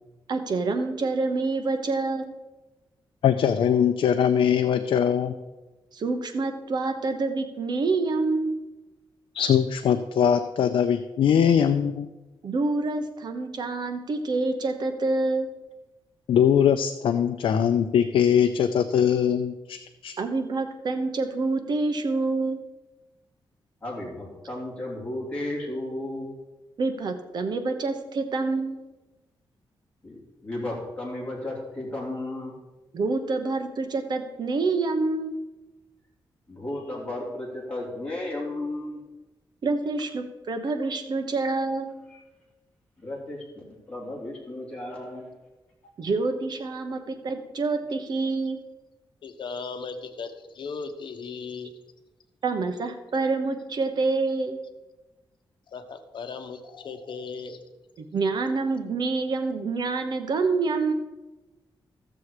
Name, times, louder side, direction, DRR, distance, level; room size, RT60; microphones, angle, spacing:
voice 1, 0.3-2.3 5.9-8.6 12.4-15.5 20.2-22.6 26.8-28.8 32.9-35.4 39.6-41.9 46.0-48.6 52.4-54.6 58.1-60.9, right 3 dB, 55° right, 7 dB, 1.1 m, -27 dB
voice 2, 3.2-5.3 9.3-12.1 16.3-20.1, left 8 dB, 80° left, 7 dB, 0.5 m, -21 dB
voice 3, 23.8-26.3 30.0-32.6 36.5-39.0 42.1-42.2 43.0-43.4 43.9-45.3, left 1 dB, 15° left, -4 dB, 3.0 m, -34 dB
voice 4, 49.2-51.7 55.7-57.6, left 5 dB, 65° left, 7 dB, 1.0 m, -37 dB
14.5 x 6.9 x 4.9 m, 1.1 s
wide cardioid pair, 140°, 9 cm